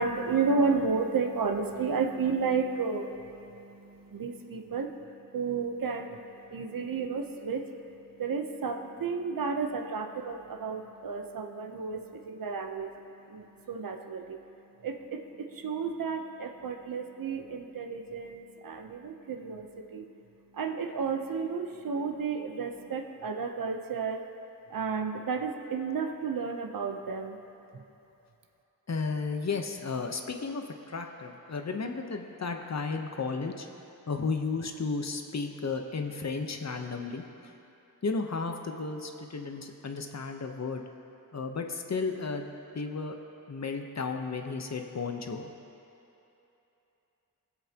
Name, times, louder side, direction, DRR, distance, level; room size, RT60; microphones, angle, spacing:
voice 1, 0.0-24.2 24.7-27.4 27.7-27.8, right 5 dB, 75° right, 5 dB, 0.9 m, -32 dB
voice 2, 28.9-33.7 34.1-37.2 38.0-40.8 41.3-43.2 43.5-45.5, left 4 dB, 50° left, 4 dB, 1.0 m, -33 dB
20.0 x 8.1 x 3.0 m, 3.0 s
cardioid pair, 60°, 34 cm